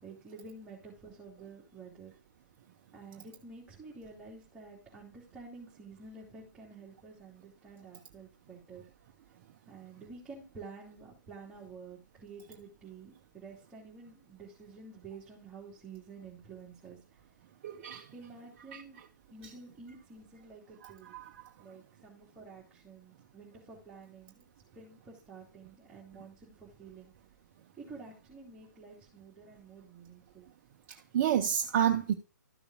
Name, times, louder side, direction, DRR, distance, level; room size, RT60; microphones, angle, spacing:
voice 1, 0.0-2.1 2.9-8.9 9.7-17.0 18.1-19.0 19.3-21.2 21.6-24.4 24.7-27.1 27.8-30.5, right 4 dB, 10° right, 3.0 m, -50 dB
voice 2, 17.6-18.1 18.7-18.8 20.8-21.4 30.9-32.1, right 10 dB, 40° right, 0.9 m, -30 dB
13.5 x 6.9 x 2.3 m
figure-of-eight pair, 130°, 10 cm